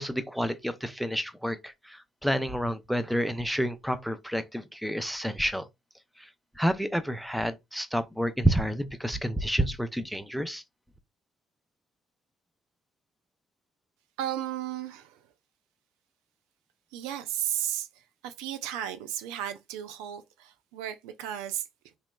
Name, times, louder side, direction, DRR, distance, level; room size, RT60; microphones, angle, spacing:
voice 1, 0.0-5.7 6.2-6.3 6.6-10.6, equal, ahead, 0.5 m, -29 dB
voice 2, 14.2-15.3 16.9-21.7, right 11 dB, 75° right, 0.4 m, -34 dB
3.0 x 2.9 x 2.2 m
hypercardioid pair, 55°, 0 cm